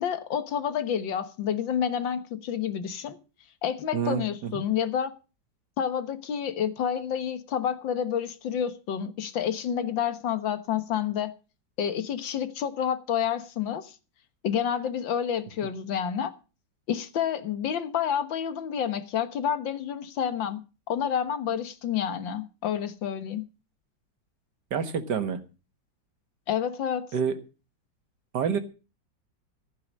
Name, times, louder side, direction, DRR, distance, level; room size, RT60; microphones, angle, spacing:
voice 1, 0.0-3.2 3.6-5.1 5.8-11.3 11.8-14.0 14.4-16.3 16.9-23.4 26.5-27.1, left 8 dB, 80° left, 2.0 m, -29 dB
voice 2, 3.9-4.5 24.7-25.4 27.1-27.3 28.3-28.6, right 7 dB, 65° right, 2.0 m, -27 dB
15.0 x 8.9 x 6.3 m
omnidirectional pair, 2.0 m